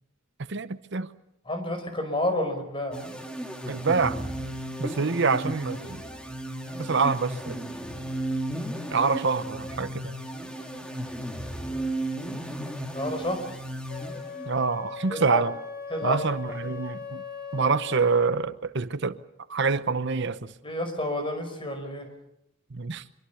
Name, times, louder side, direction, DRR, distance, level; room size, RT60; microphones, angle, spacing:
voice 1, 0.5-1.1 3.7-4.2 4.8-6.0 6.8-7.7 8.9-10.2 14.5-15.5 16.0-17.2 17.5-19.2 19.5-20.5 22.7-23.0, right 4 dB, 55° right, 0.9 m, -26 dB
voice 2, 1.5-3.0 11.6-11.9 12.9-13.5 15.1-15.4 15.9-16.3 20.6-22.1, left 1 dB, 25° left, 5.2 m, -30 dB
sound 1, 2.9-14.7, right 1 dB, 5° left, 2.4 m, -34 dB
Wind instrument woodwind instrument, 13.9-18.4, left 6 dB, 45° left, 1.7 m, -39 dB
25.5 x 23.5 x 7.1 m
head